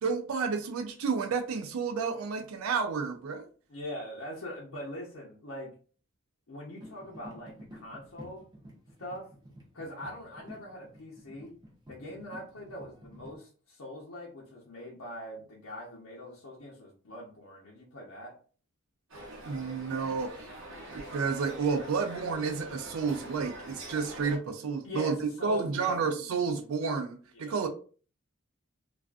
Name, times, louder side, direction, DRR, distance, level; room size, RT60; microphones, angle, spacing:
voice 1, 0.0-3.5 19.5-20.4 20.9-27.7, right 5 dB, 80° right, 7 dB, 0.4 m, -31 dB
voice 2, 3.7-5.8 6.5-8.5 9.0-9.3 9.7-11.5 11.9-18.3 24.8-26.4 27.3-27.6, left 1 dB, 70° left, -5 dB, 0.7 m, -43 dB
sound 1, 6.8-13.4, equal, 20° right, 0.7 m, -51 dB
sound 2, 19.1-24.4, right 1 dB, 65° right, 0.8 m, -44 dB
2.4 x 2.3 x 2.4 m, 0.40 s
head